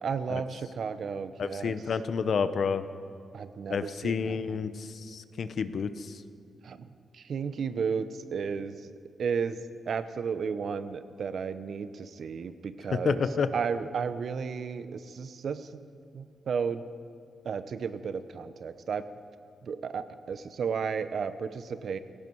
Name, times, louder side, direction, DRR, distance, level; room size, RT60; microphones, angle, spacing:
voice 1, 0.0-1.8 3.3-4.6 6.6-8.9 9.2-13.3 13.5-15.8 16.1-16.8 17.4-19.1 19.6-22.0, right 6 dB, 65° right, 12 dB, 0.8 m, -33 dB
voice 2, 1.4-2.8 3.7-6.2 13.0-13.5, left 6 dB, 65° left, 12 dB, 0.8 m, -30 dB
17.0 x 17.0 x 4.7 m, 2.4 s
cardioid pair, 75°, 0 cm